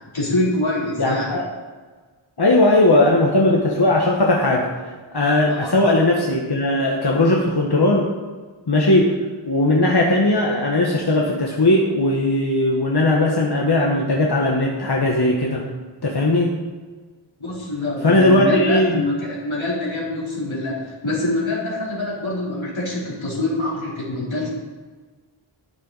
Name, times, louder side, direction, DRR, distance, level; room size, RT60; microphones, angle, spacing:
voice 1, 0.1-1.3 5.5-5.7 17.4-24.5, left 2 dB, 90° left, -7 dB, 3.9 m, -25 dB
voice 2, 1.0-1.4 2.4-4.7 5.1-8.1 8.7-9.1 9.5-15.6 16.0-16.5 18.0-19.0, left 1 dB, 55° left, -2 dB, 1.5 m, -18 dB
12.0 x 10.0 x 4.1 m, 1.4 s
wide cardioid pair, 50°, 46 cm